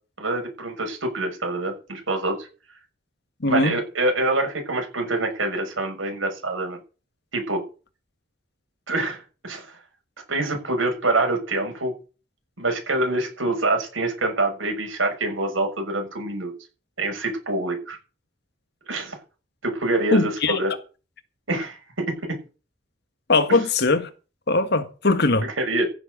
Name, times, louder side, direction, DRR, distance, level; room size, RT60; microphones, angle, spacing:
voice 1, 0.2-2.5 3.5-6.8 7.3-7.6 8.9-9.8 10.3-11.9 12.6-16.5 17.0-18.0 18.9-19.2 19.6-20.7 21.5-22.4 23.5-23.6 25.4-25.9, right 2 dB, 85° right, 6.4 m, -25 dB
voice 2, 3.4-3.7 20.1-20.6 23.3-24.1 24.5-25.5, left 3 dB, 55° left, 1.6 m, -20 dB
15.5 x 7.5 x 6.6 m
head